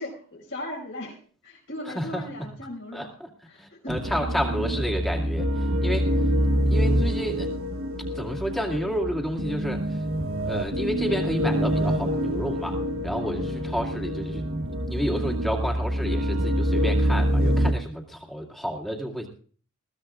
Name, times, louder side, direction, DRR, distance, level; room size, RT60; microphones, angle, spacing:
voice 1, 0.0-3.1 3.5-4.0 13.2-13.6, left 1 dB, 60° left, -1 dB, 5.8 m, -38 dB
voice 2, 1.9-2.5 2.9-3.3 3.6-6.1 6.7-7.5 8.1-10.0 10.4-14.5 14.9-19.3, equal, ahead, 0 dB, 2.2 m, -31 dB
sound 1, 3.9-17.7, equal, 70° right, 1.2 m, -26 dB
21.0 x 15.5 x 2.5 m, 0.43 s
head